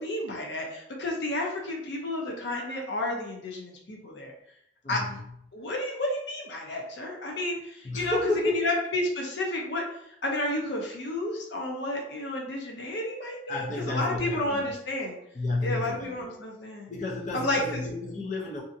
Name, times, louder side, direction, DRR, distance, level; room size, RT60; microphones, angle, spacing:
voice 1, 0.0-4.3 4.9-5.0 5.5-8.2 8.5-9.8 10.2-15.2 15.6-16.9 17.3-17.9, left 1 dB, 85° left, 0 dB, 0.6 m, -31 dB
voice 2, 4.8-5.3 7.8-8.6 13.5-14.6 15.3-16.3 16.9-18.6, left 2 dB, 45° left, -2 dB, 0.5 m, -31 dB
2.7 x 2.5 x 2.5 m, 0.74 s
head